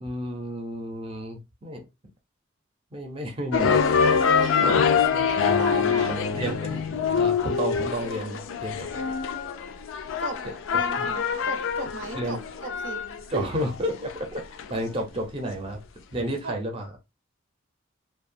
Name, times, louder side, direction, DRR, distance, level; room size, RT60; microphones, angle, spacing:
voice 1, 0.0-1.9 2.9-3.8 4.9-5.0 5.5-8.9 10.7-11.1 12.1-12.4 13.3-14.4 14.7-15.8 16.1-16.9, equal, 25° right, 0.5 m, -32 dB
sound 1, 3.5-14.7, left 6 dB, 85° left, 0.4 m, -25 dB
voice 2, 4.2-5.0 5.6-6.1 10.2-10.4 10.7-13.0 13.3-13.5 16.4-16.5, right 3 dB, 75° right, 0.5 m, -35 dB
2.8 x 2.2 x 2.5 m
head